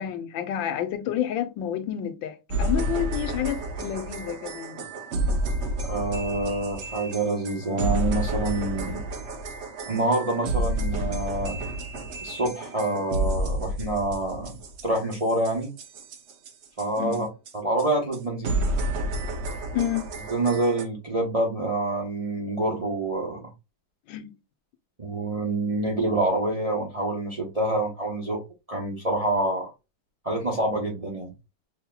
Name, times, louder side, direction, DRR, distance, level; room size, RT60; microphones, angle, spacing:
voice 1, 0.0-4.8 17.0-17.2 19.7-20.1 24.1-24.3, left 10 dB, 80° left, 1.3 m, -29 dB
sound 1, 2.5-17.2 17.5-17.6 17.8-17.9 18.1-18.2 18.4-20.9, right 1 dB, 80° right, 0.6 m, -30 dB
voice 2, 5.8-9.0 9.9-11.6 12.2-14.5 14.8-15.7 16.8-17.3 17.6-18.6 20.3-23.4 25.0-28.4 28.7-29.7 30.2-31.3, right 2 dB, 30° right, 0.6 m, -26 dB
5.6 x 2.8 x 2.2 m
omnidirectional pair, 2.1 m